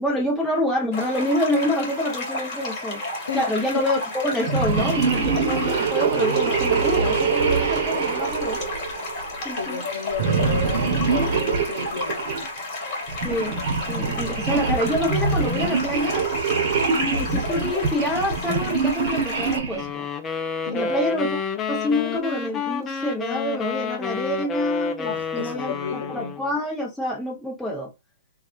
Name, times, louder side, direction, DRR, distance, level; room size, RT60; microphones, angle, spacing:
voice 1, 0.0-3.0 3.3-8.6 9.4-9.8 10.5-10.6 13.2-13.6 13.9-16.2 16.9-20.1 20.6-21.4 21.7-27.9, left 1 dB, ahead, 0.9 m, -27 dB
sound 1, 0.9-19.6, left 2 dB, 35° left, 1.5 m, -32 dB
voice 2, 3.3-3.8 7.9-8.1 9.5-12.2 20.7-21.0 25.1-26.3, left 6 dB, 75° left, 0.7 m, -32 dB
sound 2, 4.4-9.3 10.1-12.4 13.1-19.9, right 5 dB, 50° right, 1.0 m, -24 dB
sound 3, 19.7-26.6, left 5 dB, 20° left, 0.4 m, -29 dB
3.3 x 2.2 x 2.5 m
hypercardioid pair, 140°, 0 cm